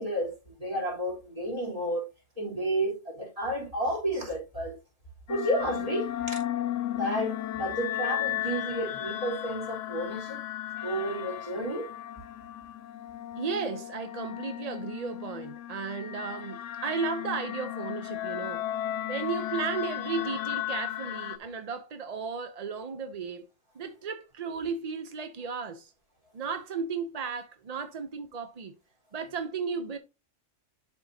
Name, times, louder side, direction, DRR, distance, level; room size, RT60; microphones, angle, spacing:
voice 1, 0.0-2.0 2.4-4.8 5.3-6.4 6.9-10.4 10.8-11.9, right 1 dB, 30° right, 3.3 m, -31 dB
sound 1, 5.3-21.4, left 13 dB, 80° left, 0.9 m, -35 dB
voice 2, 13.4-18.6 19.1-23.4 23.8-25.9 26.3-28.7 29.1-30.0, right 5 dB, 45° right, 0.5 m, -34 dB
11.0 x 4.5 x 2.7 m
omnidirectional pair, 1.3 m